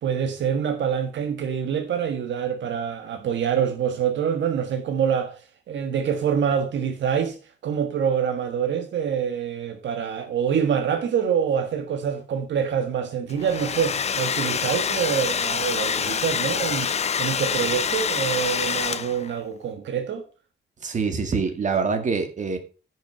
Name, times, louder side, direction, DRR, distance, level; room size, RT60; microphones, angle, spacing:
voice 1, 0.0-5.4 5.7-7.4 7.6-16.9 17.2-20.2, right 8 dB, 85° right, 1.5 m, -25 dB
Domestic sounds home sounds, 13.3-19.4, left 7 dB, 35° left, 0.6 m, -26 dB
voice 2, 20.8-22.6, right 5 dB, 40° right, 2.0 m, -25 dB
10.5 x 6.5 x 5.4 m
wide cardioid pair, 165°, 19 cm